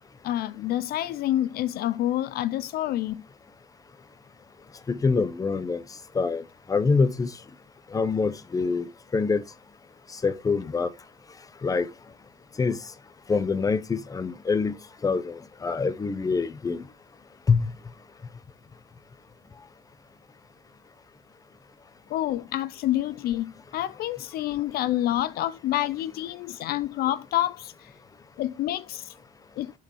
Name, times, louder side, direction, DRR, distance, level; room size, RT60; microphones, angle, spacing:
voice 1, 0.2-3.2 22.1-27.9 28.4-29.1 29.6-29.7, left 13 dB, 65° left, 0.4 m, -28 dB
voice 2, 4.9-5.8 6.1-6.4 6.7-7.3 7.9-9.4 10.1-10.9 11.6-11.9 12.6-12.8 13.3-14.8 15.0-16.8 17.5-17.7, left 4 dB, 20° left, 0.7 m, -25 dB
11.5 x 4.1 x 3.0 m
cardioid pair, 110°, 17 cm